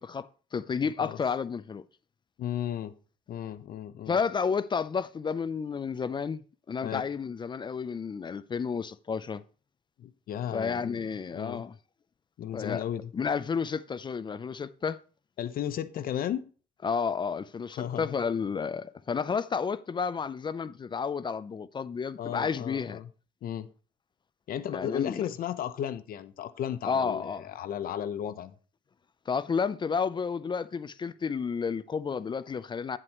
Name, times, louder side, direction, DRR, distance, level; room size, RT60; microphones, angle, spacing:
voice 1, 0.0-1.8 4.1-6.4 6.7-9.4 10.5-11.7 12.5-12.8 13.1-15.0 16.8-23.0 24.7-25.1 26.8-27.5 29.3-33.0, left 6 dB, 25° left, 0.5 m, -31 dB
voice 2, 2.4-2.9 3.3-4.2 6.8-7.0 10.0-11.0 11.3-11.6 12.4-13.1 15.4-16.4 17.8-18.2 22.2-23.1 23.4-23.7 24.5-28.6, left 10 dB, 60° left, 0.9 m, -34 dB
9.6 x 7.7 x 3.0 m
cardioid pair, 110°, 17 cm